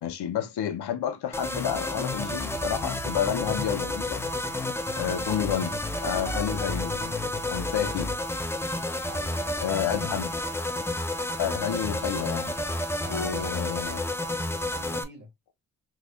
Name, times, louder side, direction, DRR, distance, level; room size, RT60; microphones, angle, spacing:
voice 1, 0.0-4.2 5.0-5.8 6.0-7.2 7.5-8.1 9.6-10.3 11.4-12.6 13.1-14.1, left 9 dB, 80° left, 0.7 m, -30 dB
sound 1, 1.3-15.0, left 1 dB, 5° left, 0.5 m, -30 dB
voice 2, 9.1-9.8 12.9-13.6 14.7-15.3, right 3 dB, 25° right, 1.6 m, -46 dB
3.7 x 3.2 x 2.2 m
cardioid pair, 85°, 39 cm